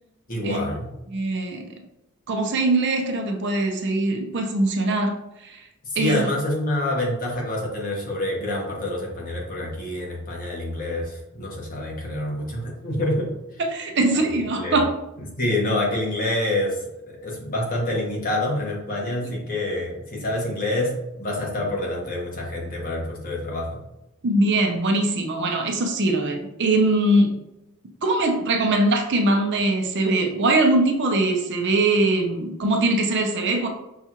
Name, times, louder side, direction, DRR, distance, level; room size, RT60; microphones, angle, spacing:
voice 1, 0.3-0.9 5.9-13.3 14.6-14.8 15.2-16.8 17.1-23.8, left 1 dB, 40° left, -2 dB, 1.1 m, -27 dB
voice 2, 1.1-1.7 2.3-5.2 5.4-5.6 6.0-6.3 13.7-14.9 24.2-27.4 28.0-33.7, right 2 dB, 55° right, 3 dB, 0.6 m, -22 dB
5.6 x 2.4 x 2.8 m, 0.89 s
head